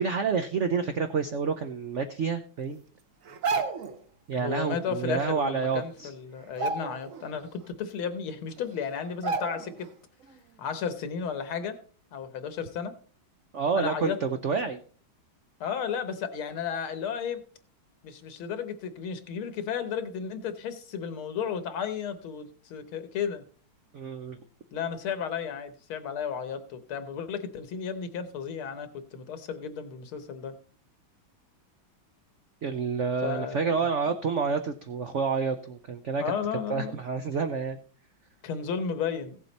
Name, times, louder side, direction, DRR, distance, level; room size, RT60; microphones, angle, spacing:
voice 1, 0.0-2.8 4.3-6.1 13.5-14.8 23.9-24.4 32.6-36.2 36.7-37.8, right 5 dB, 85° right, 8 dB, 0.6 m, -28 dB
sound 1, 3.3-4.0 5.4-5.5 5.9-6.1 6.5-7.3 7.7-7.8 8.6-8.7 9.2-9.9 10.2-10.4, right 4 dB, 50° right, 1.0 m, -31 dB
voice 2, 4.3-9.9 10.6-11.8 12.1-12.9 13.8-14.2 15.6-17.4 18.0-23.4 24.7-30.5 33.2-33.9 36.2-37.0 38.4-39.4, left 7 dB, 85° left, 11 dB, 2.0 m, -33 dB
16.0 x 7.6 x 4.1 m, 0.43 s
omnidirectional pair, 2.3 m